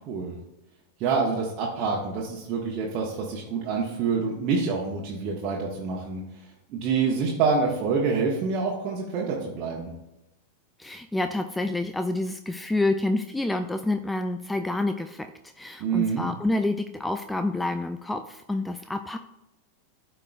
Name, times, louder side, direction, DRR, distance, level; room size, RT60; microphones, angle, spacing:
voice 1, 0.1-0.4 1.0-6.2 6.7-9.9 15.8-16.3, right 5 dB, 40° right, -3 dB, 1.1 m, -27 dB
voice 2, 10.8-15.3 15.6-19.2, left 2 dB, 5° left, 8 dB, 0.3 m, -28 dB
12.5 x 4.5 x 2.3 m, 0.95 s
figure-of-eight pair, 90°, 0 cm